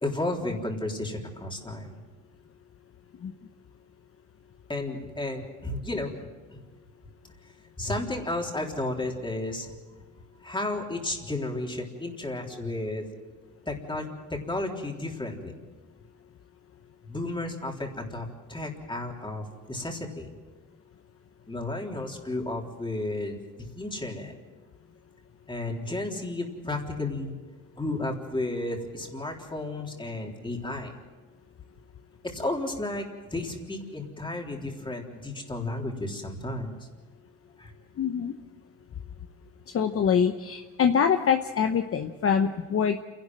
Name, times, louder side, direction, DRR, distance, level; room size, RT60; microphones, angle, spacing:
voice 1, 0.0-2.0 4.7-6.1 6.5-6.6 7.8-9.7 10.4-13.1 13.7-15.5 17.0-20.3 21.5-24.3 25.5-27.3 27.8-30.9 32.2-36.8 37.6-37.7, left 2 dB, 15° left, 1 dB, 3.7 m, -33 dB
voice 2, 38.0-38.3 39.7-43.0, left 7 dB, 50° left, 7 dB, 0.9 m, -24 dB
28.5 x 11.5 x 7.7 m, 1.3 s
cardioid pair, 90°, 30 cm